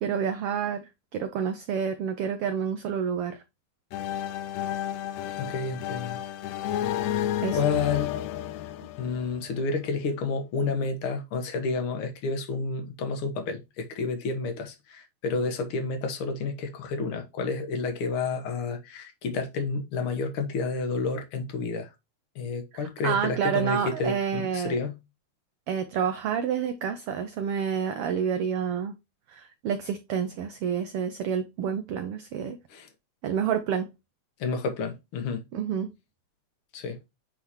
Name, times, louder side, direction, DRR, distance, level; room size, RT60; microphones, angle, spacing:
voice 1, 0.0-3.4 7.4-7.6 22.7-24.8 25.7-28.9 29.3-32.6 33.2-33.9 35.5-35.9, right 7 dB, 80° right, 1.3 m, -29 dB
sound 1, 3.9-9.7, left 12 dB, 80° left, 1.8 m, -31 dB
voice 2, 5.4-6.2 7.1-8.2 9.0-21.9 22.4-25.0 32.7-32.9 34.4-35.4 36.7-37.0, left 4 dB, 55° left, 1.9 m, -30 dB
8.4 x 3.8 x 3.0 m
omnidirectional pair, 3.3 m